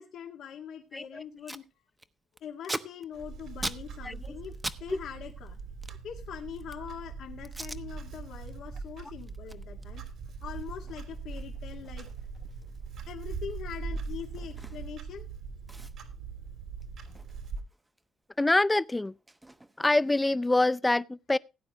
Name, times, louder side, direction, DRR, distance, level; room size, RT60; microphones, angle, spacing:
voice 1, 0.0-1.7 2.4-5.6 6.0-10.0 10.4-12.1 13.1-15.3, left 8 dB, 75° left, 1.9 m, -43 dB
Packing tape duct tape, 0.9-1.0 1.2-1.7 2.0-4.8 5.1-6.9 7.4-7.8 8.3-8.5 8.9-15.1 15.3-15.4 15.7-18.1 18.3-20.3, right 1 dB, 10° right, 1.0 m, -43 dB
Clock, 3.1-17.6, right 5 dB, 70° right, 3.2 m, -41 dB
voice 2, 18.4-19.1 19.8-21.4, left 2 dB, 15° left, 0.5 m, -25 dB
17.0 x 9.2 x 3.0 m
cardioid pair, 90°, 0 cm